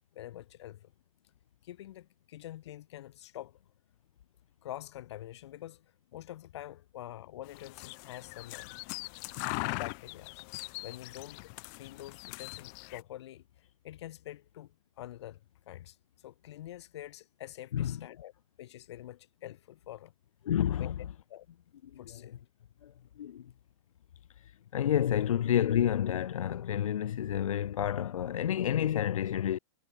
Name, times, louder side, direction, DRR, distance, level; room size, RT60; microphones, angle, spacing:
voice 1, 0.1-0.9 1.6-3.6 4.6-8.7 9.6-10.4 10.8-11.5 11.8-15.4 15.7-16.0 16.2-18.3 18.6-20.1 20.8-20.9 21.3-21.5 22.0-22.3, left 13 dB, 55° left, 4.1 m, -46 dB
sound 1, 7.5-13.0, left 39 dB, 35° left, 1.9 m, -41 dB
voice 2, 20.5-20.9 21.9-22.2 22.8-22.9 23.2-23.4 24.4-24.5 24.7-29.6, left 10 dB, 85° left, 1.0 m, -29 dB
hypercardioid pair, 165°, 17 cm